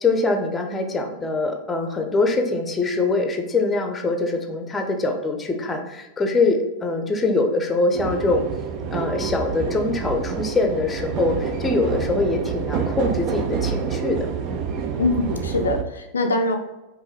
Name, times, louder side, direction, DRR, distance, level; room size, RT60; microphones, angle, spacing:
voice 1, 0.0-8.4 8.9-14.3, left 3 dB, 15° left, 4 dB, 0.7 m, -23 dB
sound 1, 7.9-15.8, right 7 dB, 40° right, 0.4 m, -28 dB
voice 2, 15.0-16.6, left 2 dB, 70° left, 4 dB, 0.4 m, -23 dB
5.4 x 2.6 x 3.2 m, 1.0 s
figure-of-eight pair, 90°, 0 cm